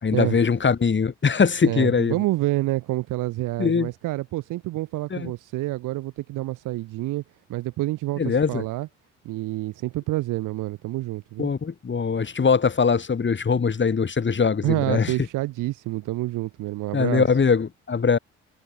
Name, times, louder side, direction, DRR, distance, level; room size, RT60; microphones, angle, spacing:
voice 1, 0.0-2.2 3.6-3.9 5.1-5.3 8.2-8.6 11.4-15.1 16.9-18.2, left 5 dB, 30° left, 5.7 m, -22 dB
voice 2, 1.6-7.2 7.5-8.9 9.2-11.5 14.6-17.3, right 18 dB, 60° right, 5.3 m, -28 dB
figure-of-eight pair, 50°, 35 cm